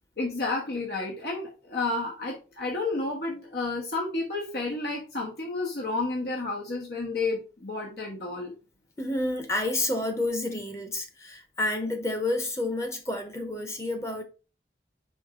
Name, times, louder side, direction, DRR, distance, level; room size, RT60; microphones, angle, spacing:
voice 1, 0.2-8.5, left 3 dB, 70° left, 1.3 m, -31 dB
voice 2, 9.0-14.2, left 2 dB, 15° left, 0.9 m, -29 dB
5.2 x 5.0 x 3.7 m
head